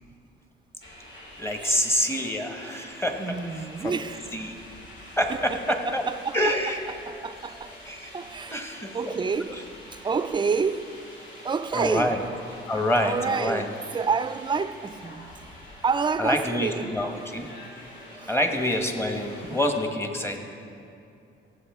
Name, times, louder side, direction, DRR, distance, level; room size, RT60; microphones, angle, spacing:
sound 1, 0.8-19.7, left 1 dB, 65° left, 2.8 m, -46 dB
voice 1, 1.4-3.4 3.8-4.0 4.3-4.5 5.2-6.0 6.3-6.8 7.9-8.1 8.5-9.2 9.5-9.6 11.7-12.2 12.7-13.7 16.2-17.5 18.3-20.4, left 1 dB, 10° left, 1.2 m, -26 dB
voice 2, 3.2-4.3 5.3-6.6 6.9-7.7 8.1-8.6 8.9-11.0 11.4-12.2 12.7-17.0 18.2-18.3 19.4-19.6, right 5 dB, 25° right, 0.4 m, -29 dB
17.5 x 7.5 x 3.6 m
cardioid pair, 90°, 20 cm